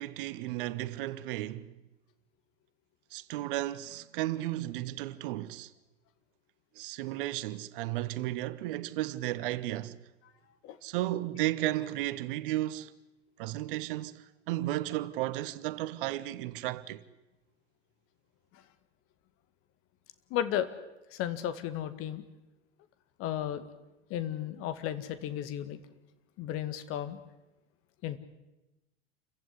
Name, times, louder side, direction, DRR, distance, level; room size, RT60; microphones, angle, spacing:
voice 1, 0.0-1.7 3.1-5.7 6.8-10.0 10.8-12.9 13.4-17.0, right 15 dB, 55° right, 1.1 m, -34 dB
voice 2, 20.3-20.7 21.1-22.2 23.2-23.6 24.1-25.8 26.4-27.2 28.0-28.2, left 11 dB, 45° left, 2.0 m, -34 dB
28.0 x 15.5 x 9.9 m
figure-of-eight pair, 80°, 32 cm